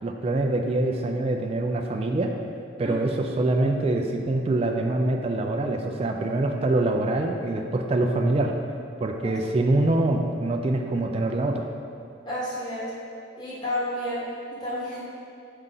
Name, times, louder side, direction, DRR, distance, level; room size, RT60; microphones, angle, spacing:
voice 1, 0.0-2.3 2.8-8.5 9.0-11.7, right 2 dB, 30° right, 2 dB, 0.3 m, -24 dB
voice 2, 12.2-12.9 13.4-15.0, left 1 dB, 20° left, -8 dB, 1.4 m, -31 dB
5.5 x 4.8 x 3.9 m, 2.5 s
head